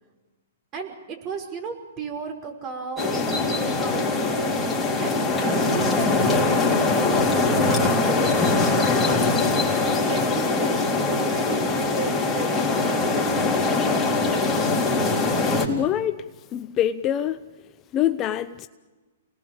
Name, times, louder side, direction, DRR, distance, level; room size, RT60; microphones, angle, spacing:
voice 1, 0.7-13.1, right 5 dB, 30° right, 5.4 m, -35 dB
sound 1, 3.0-15.7, left 3 dB, 10° left, 3.6 m, -22 dB
voice 2, 15.7-16.2 16.5-17.4 17.9-18.7, left 11 dB, 30° left, 0.8 m, -24 dB
28.5 x 19.5 x 7.3 m
hypercardioid pair, 130°, 0 cm